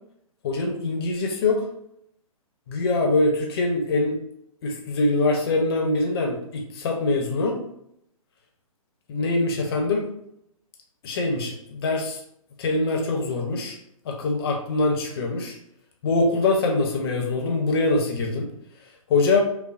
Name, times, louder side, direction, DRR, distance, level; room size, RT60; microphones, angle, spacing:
voice 1, 0.4-1.7 2.7-4.2 4.6-7.6 9.1-10.1 11.0-12.2 12.6-13.8 14.0-15.6 16.0-18.5 19.1-19.4, left 2 dB, 40° left, 1 dB, 0.9 m, -23 dB
5.6 x 2.1 x 2.6 m, 0.75 s
figure-of-eight pair, 125°, 19 cm